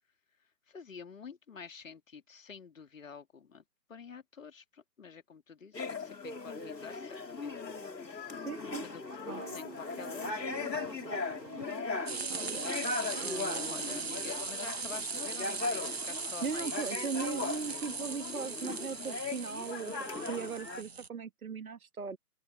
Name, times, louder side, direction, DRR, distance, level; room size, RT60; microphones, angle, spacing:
voice 1, 0.7-3.6 3.9-7.6 8.8-10.9 13.3-16.8, left 6 dB, 50° left, 2.6 m, -48 dB
sound 1, 5.7-20.8, left 4 dB, 80° left, 2.9 m, -38 dB
voice 2, 8.4-8.9 9.3-9.4 12.3-12.7 13.1-14.0 16.4-22.2, right 5 dB, 60° right, 1.5 m, -39 dB
sound 2, 9.3-14.4, right 17 dB, 15° right, 1.9 m, -52 dB
Cold Water in a Hot Frying Pan, 12.1-21.1, right 5 dB, 40° right, 0.6 m, -39 dB
open air
figure-of-eight pair, 155°, 49 cm